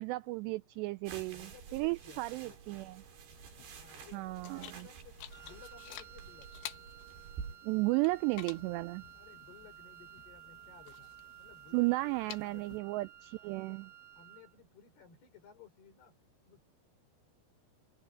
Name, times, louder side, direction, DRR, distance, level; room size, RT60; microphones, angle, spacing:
voice 1, 0.0-3.0 4.1-4.9 7.6-9.0 11.7-13.9, right 23 dB, 90° right, 2.4 m, -34 dB
sound 1, 1.0-7.6, right 6 dB, 60° right, 5.8 m, -50 dB
voice 2, 1.3-2.8 3.7-6.5 9.2-11.1 11.4-12.8 13.6-13.9 14.1-16.1 16.5-16.7, left 7 dB, 55° left, 6.5 m, -58 dB
sound 2, 3.3-12.8, left 14 dB, 80° left, 3.7 m, -52 dB
Wind instrument woodwind instrument, 5.3-14.5, right 14 dB, 35° right, 1.4 m, -55 dB
omnidirectional pair, 5.5 m